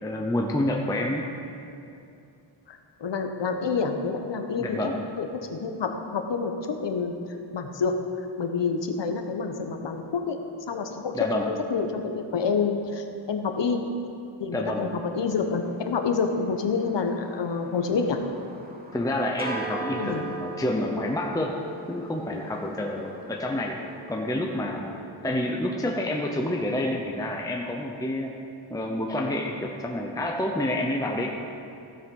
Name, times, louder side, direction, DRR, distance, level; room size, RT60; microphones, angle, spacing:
voice 1, 0.0-1.3 4.6-5.0 11.1-11.5 14.5-14.9 18.9-21.6 21.9-23.8 24.1-24.9 25.2-28.3 28.7-31.3, left 1 dB, 10° left, 0 dB, 0.7 m, -28 dB
voice 2, 2.7-7.1 7.5-10.4 10.7-13.8 14.4-18.2 20.0-20.3, left 5 dB, 60° left, 5 dB, 1.1 m, -28 dB
sound 1, 14.5-26.1, right 2 dB, 20° right, 1.2 m, -41 dB
15.5 x 7.8 x 5.4 m, 2.6 s
wide cardioid pair, 170°, 48 cm